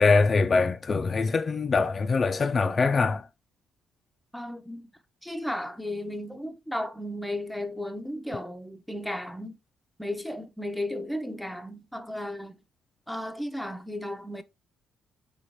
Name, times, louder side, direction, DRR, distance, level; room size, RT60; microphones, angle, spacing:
voice 1, 0.0-3.2, left 4 dB, 40° left, 0.4 m, -23 dB
voice 2, 4.3-4.9 5.2-9.6 10.0-12.6 13.1-14.4, left 1 dB, ahead, 0.6 m, -34 dB
4.2 x 2.9 x 3.0 m
cardioid pair, 90°, 0 cm